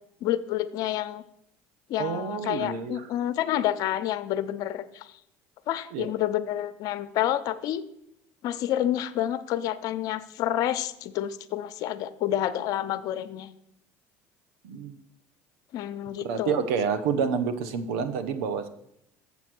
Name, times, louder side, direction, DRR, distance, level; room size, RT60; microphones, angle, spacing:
voice 1, 0.2-1.2 1.9-5.1 5.7-7.8 8.4-13.5 15.7-16.6, left 12 dB, 65° left, 12 dB, 0.7 m, -29 dB
voice 2, 2.0-3.1 5.9-6.1 14.6-15.0 16.2-18.7, right 6 dB, 80° right, 10 dB, 0.9 m, -28 dB
7.1 x 7.1 x 6.1 m, 0.78 s
supercardioid pair, 90°, 7 cm